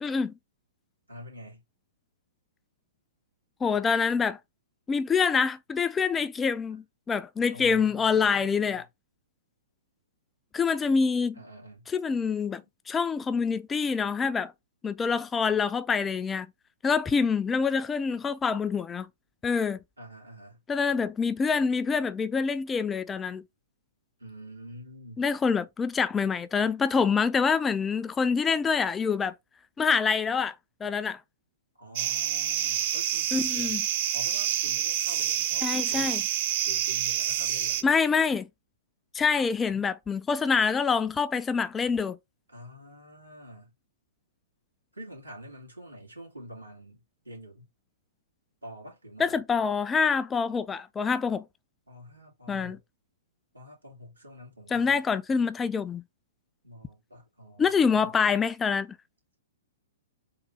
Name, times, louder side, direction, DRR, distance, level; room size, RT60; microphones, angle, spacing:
voice 1, 0.0-0.3 3.6-4.4 4.9-8.9 10.5-11.4 11.9-12.6 12.9-14.5 14.8-16.5 16.8-19.1 19.4-19.8 20.7-23.4 25.2-29.3 29.8-30.5 30.8-31.2 33.3-33.8 35.6-36.2 37.8-38.5 39.1-42.2 49.2-51.4 52.5-52.8 54.7-56.0 57.6-59.0, left 5 dB, 15° left, 0.3 m, -26 dB
voice 2, 1.1-1.6 7.5-8.8 11.3-11.9 20.0-20.6 24.2-25.2 31.8-33.8 34.1-36.3 36.7-37.9 42.5-43.7 44.9-47.7 48.6-49.4 51.9-52.8 53.5-55.0 56.6-58.1, equal, 90° right, 2.3 m, -46 dB
sound 1, 32.0-37.8, right 11 dB, 45° right, 0.5 m, -28 dB
3.9 x 2.6 x 4.7 m
figure-of-eight pair, 115°, 0 cm